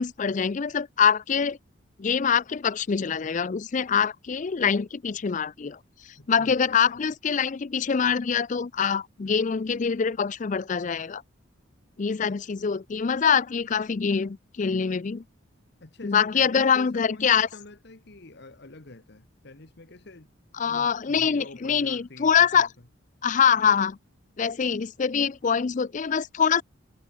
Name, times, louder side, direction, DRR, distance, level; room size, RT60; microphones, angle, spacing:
voice 1, 0.0-1.6 2.0-5.8 6.3-11.2 12.0-15.2 16.0-17.5 20.5-22.7 23.2-24.0 24.4-26.6, left 7 dB, 35° left, 0.4 m, -24 dB
voice 2, 6.2-6.7 12.3-12.5 15.8-20.3 20.6-22.7, left 2 dB, 55° left, 1.4 m, -46 dB
head